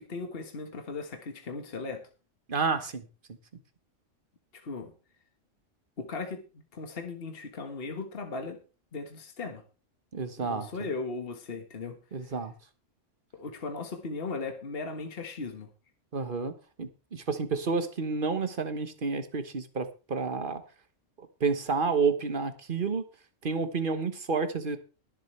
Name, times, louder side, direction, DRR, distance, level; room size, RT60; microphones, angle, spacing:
voice 1, 0.0-2.1 4.5-4.9 6.0-8.6 8.9-9.6 10.4-12.0 12.3-12.4 13.3-15.7, left 3 dB, 50° left, 5 dB, 1.7 m, -37 dB
voice 2, 2.5-3.0 10.1-10.7 12.1-12.5 16.1-16.5 16.8-20.6 21.4-23.0 23.4-24.8, right 4 dB, 45° right, 10 dB, 1.4 m, -30 dB
21.5 x 7.7 x 3.3 m, 0.33 s
omnidirectional pair, 1.3 m